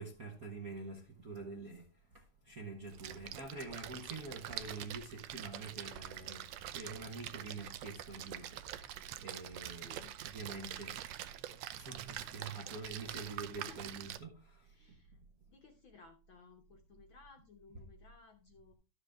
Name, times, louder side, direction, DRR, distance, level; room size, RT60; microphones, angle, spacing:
voice 1, 0.0-14.7 17.7-17.9, right 3 dB, 50° right, 1.1 m, -47 dB
Splash splatter, 2.9-14.2, right 11 dB, 75° right, 1.7 m, -45 dB
voice 2, 4.7-5.1 9.8-10.2 13.5-14.0 14.7-15.2 15.5-18.7, left 4 dB, 60° left, 1.4 m, -59 dB
13.0 x 6.6 x 3.5 m
omnidirectional pair, 3.3 m